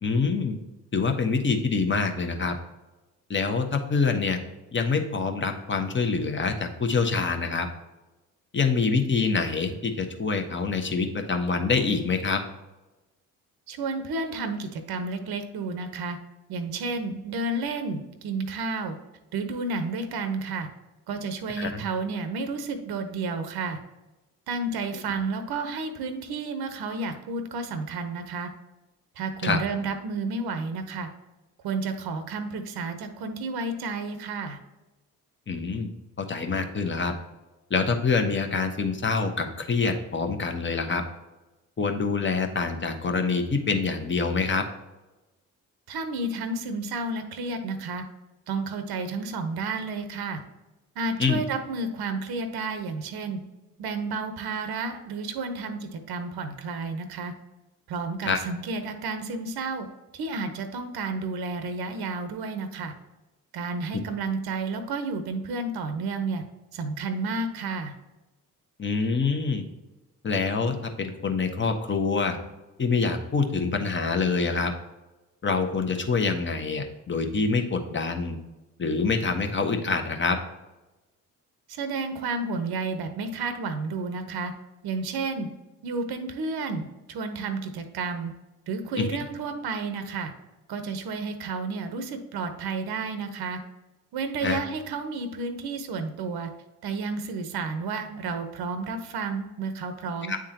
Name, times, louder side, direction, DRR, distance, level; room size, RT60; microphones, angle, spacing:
voice 1, 0.0-0.6 0.9-2.5 3.3-4.4 4.7-7.7 8.5-12.4 21.6-21.8 29.4-29.6 35.5-35.9 36.2-37.1 37.7-41.0 41.8-44.6 51.2-51.4 58.2-58.4 68.8-69.6 70.2-72.4 72.8-74.7 75.4-78.4 78.8-80.4 89.0-89.1 94.4-94.6 100.3-100.4, left 4 dB, 25° left, 5 dB, 1.0 m, -26 dB
voice 2, 13.7-16.2 16.5-18.9 19.3-20.7 21.1-23.8 24.5-28.5 29.2-31.1 31.6-34.6 45.9-48.0 48.5-50.4 51.0-53.4 53.8-57.3 57.9-59.9 60.1-62.9 63.5-66.4 66.7-67.9 81.7-84.5 84.8-85.5 85.8-88.3 88.7-90.3 90.7-93.6 94.1-96.5 96.8-100.3, right 3 dB, 55° right, 8 dB, 0.8 m, -31 dB
9.0 x 3.7 x 2.8 m, 1.1 s
hypercardioid pair, 50°, 45 cm